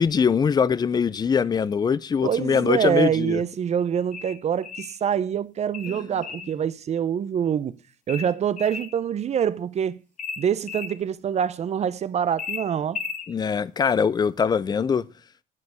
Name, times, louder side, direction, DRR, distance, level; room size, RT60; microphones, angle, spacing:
voice 1, 0.0-3.4 5.9-6.0 13.3-15.0, left 6 dB, 25° left, 0.4 m, -22 dB
voice 2, 2.2-7.7 8.1-10.0 10.4-13.0, right 8 dB, 40° right, 0.5 m, -25 dB
sound 1, 4.1-5.0 5.7-6.5 8.1-9.0 10.2-10.9 12.4-13.3, left 5 dB, 50° left, 1.3 m, -34 dB
10.5 x 5.3 x 6.1 m
cardioid pair, 110°, 17 cm